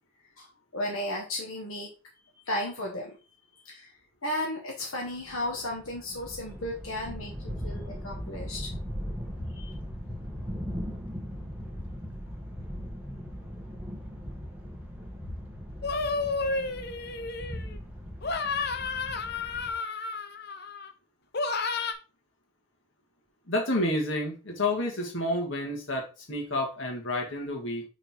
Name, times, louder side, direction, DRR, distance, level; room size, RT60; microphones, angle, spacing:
voice 1, 0.7-1.9 2.4-3.2 3.6-3.9 4.2-8.7 9.5-9.7, left 1 dB, 85° left, -1 dB, 1.5 m, -34 dB
sound 1, 5.1-19.7, equal, 5° right, 1.3 m, -39 dB
sound 2, 15.8-17.8 18.2-20.9 21.3-21.9, left 4 dB, 50° left, 0.7 m, -31 dB
voice 2, 23.5-27.8, left 1 dB, 65° left, 0 dB, 2.0 m, -29 dB
6.0 x 4.0 x 4.5 m, 0.33 s
head